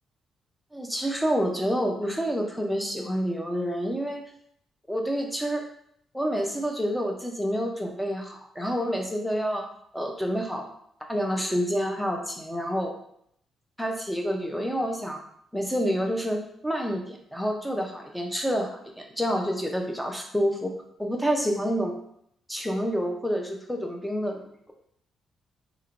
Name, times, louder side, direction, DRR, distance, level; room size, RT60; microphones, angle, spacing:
voice 1, 0.7-4.2 4.9-5.6 6.1-9.7 9.9-10.7 11.1-12.9 13.8-15.2 15.5-20.7 21.0-22.0 22.5-24.7, equal, 5° left, 2 dB, 0.5 m, -28 dB
3.2 x 2.9 x 2.5 m, 0.69 s
cardioid pair, 125°, 0 cm